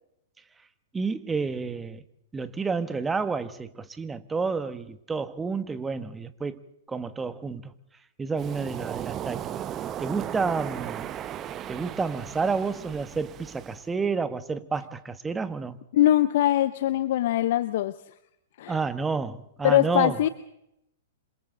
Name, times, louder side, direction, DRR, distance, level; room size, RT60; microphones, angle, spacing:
voice 1, 0.9-2.0 2.3-6.6 6.9-7.7 8.2-9.6 10.0-11.0 11.7-15.8 18.7-20.2, right 4 dB, 15° right, 1.5 m, -30 dB
Waves surf, 8.4-13.8, right 11 dB, 30° right, 1.1 m, -36 dB
voice 2, 15.9-18.0 18.6-18.8 19.6-20.3, left 13 dB, 60° left, 0.9 m, -22 dB
27.5 x 26.5 x 4.0 m
hypercardioid pair, 115°, 0 cm